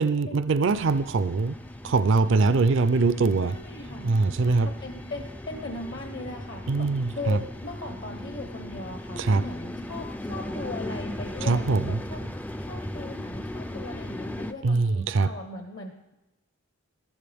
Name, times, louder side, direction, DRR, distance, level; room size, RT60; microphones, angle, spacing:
voice 1, 0.0-1.6 1.8-3.5 4.0-4.7 6.7-7.4 9.2-9.4 11.4-12.0 14.6-15.3, right 3 dB, 60° right, 13 dB, 0.4 m, -22 dB
sound 1, 0.7-14.5, left 1 dB, 5° left, 0.3 m, -37 dB
voice 2, 3.4-4.1 4.4-6.9 7.2-16.1, left 2 dB, 55° left, 4 dB, 1.0 m, -39 dB
14.5 x 12.0 x 3.5 m, 0.97 s
head